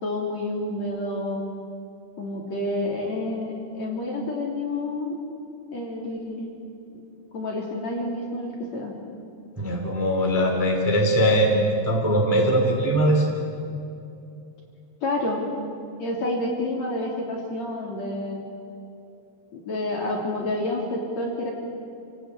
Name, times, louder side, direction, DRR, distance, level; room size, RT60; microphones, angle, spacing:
voice 1, 0.0-1.4 2.2-5.2 5.7-6.5 7.3-8.9 15.0-15.4 16.0-18.4 19.5-21.5, left 1 dB, 40° left, -1 dB, 4.0 m, -29 dB
voice 2, 9.6-13.3, equal, 5° right, 0 dB, 2.6 m, -21 dB
29.0 x 18.5 x 8.5 m, 2.6 s
omnidirectional pair, 5.1 m